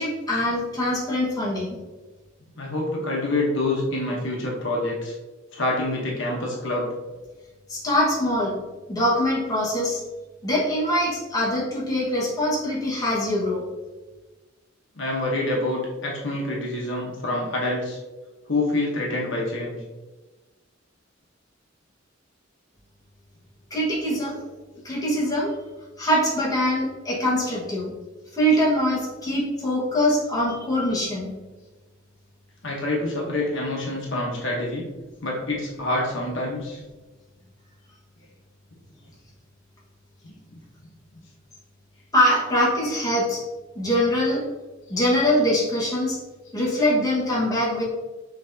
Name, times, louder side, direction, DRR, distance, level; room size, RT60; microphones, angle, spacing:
voice 1, 0.0-1.8 7.7-8.5 8.9-10.0 10.4-13.6 23.7-24.5 24.8-25.6 26.0-27.9 28.3-31.3 42.1-43.4 43.7-44.4 44.9-46.2 46.5-47.8, equal, 20° left, -6 dB, 1.4 m, -23 dB
voice 2, 2.6-5.1 5.5-6.9 15.0-18.0 18.5-19.8 32.6-34.9 35.2-36.8 40.2-40.6, left 2 dB, 70° left, -2 dB, 1.1 m, -26 dB
5.8 x 3.3 x 2.7 m, 1.2 s
head